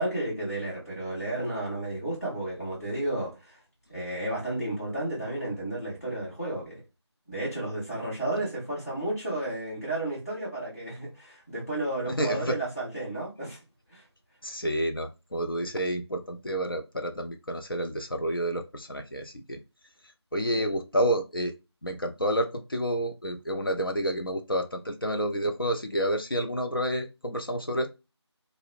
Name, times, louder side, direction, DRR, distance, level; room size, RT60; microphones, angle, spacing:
voice 1, 0.0-3.6 3.9-6.8 7.3-13.6 13.9-14.0 20.5-20.7, right 1 dB, 30° left, 1.3 m, -32 dB
voice 2, 12.1-12.6 14.4-19.6 20.3-21.6 21.8-27.9, equal, 50° left, 0.5 m, -29 dB
2.7 x 2.0 x 2.5 m
figure-of-eight pair, 175°, 15 cm